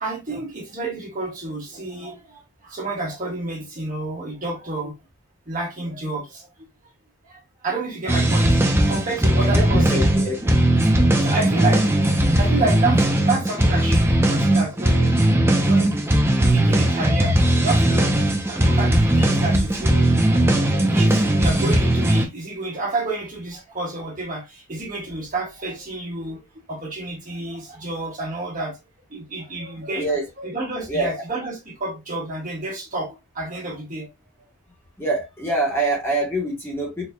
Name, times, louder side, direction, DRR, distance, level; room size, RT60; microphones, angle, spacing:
voice 1, 0.0-2.2 2.6-4.9 5.5-6.4 7.6-8.5 8.9-10.0 11.2-15.1 15.6-15.9 16.5-17.3 17.6-20.1 20.4-24.4 24.7-26.4 26.7-28.7 29.1-30.1 30.4-33.1 33.3-34.1, right 2 dB, 35° right, 1.5 m, -29 dB
sound 1, 8.1-22.3, right 1 dB, 10° right, 0.5 m, -18 dB
voice 2, 9.5-10.5 30.0-30.2 30.9-31.2 35.0-37.1, right 1 dB, 10° left, 1.1 m, -25 dB
4.2 x 3.0 x 2.2 m
head